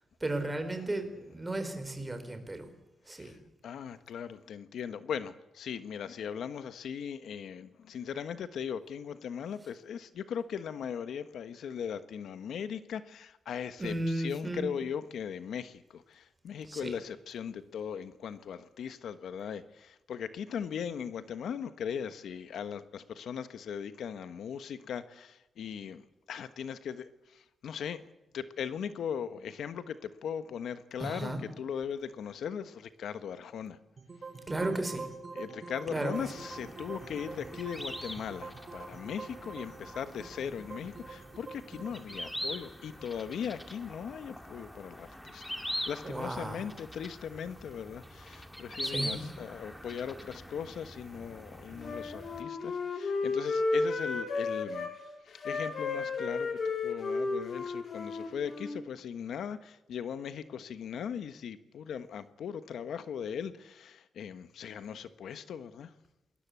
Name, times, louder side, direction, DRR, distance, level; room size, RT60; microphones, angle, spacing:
voice 1, 0.2-2.7 3.1-3.4 13.8-14.7 16.7-16.9 31.0-31.4 34.5-35.1 35.9-36.3 46.0-46.7 48.8-49.3, right 2 dB, 15° right, 8 dB, 4.1 m, -34 dB
voice 2, 3.6-28.0 28.3-33.8 35.3-45.4 45.9-65.9, left 7 dB, 85° left, 12 dB, 1.2 m, -39 dB
sound 1, 34.0-44.2, right 4 dB, 35° right, 3.1 m, -46 dB
sound 2, 36.1-52.4, equal, 5° left, 2.0 m, -43 dB
Wind instrument woodwind instrument, 51.8-54.9 55.3-58.8, left 3 dB, 45° left, 4.1 m, -33 dB
27.5 x 21.0 x 8.4 m, 0.97 s
wide cardioid pair, 145°, 0 cm